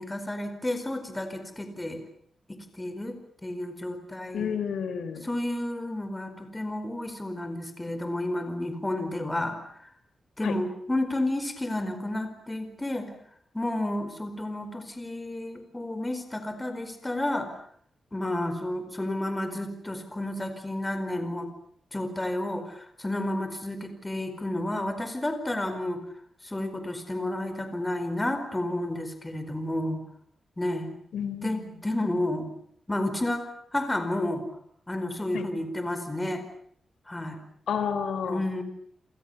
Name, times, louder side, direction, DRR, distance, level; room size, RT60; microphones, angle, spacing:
voice 1, 0.0-2.0 2.5-4.6 5.2-9.6 10.4-13.1 13.5-17.6 18.1-21.5 21.9-26.0 26.4-30.0 30.6-30.9 31.4-32.5 32.9-34.4 34.9-36.4 37.1-37.4 38.3-38.6, left 1 dB, 10° left, 8 dB, 4.7 m, -31 dB
voice 2, 4.3-5.3 10.4-10.5 31.1-31.7 35.3-35.4 37.7-38.4, left 7 dB, 80° left, 11 dB, 3.7 m, -30 dB
28.5 x 27.5 x 7.0 m, 0.63 s
wide cardioid pair, 160°, 0 cm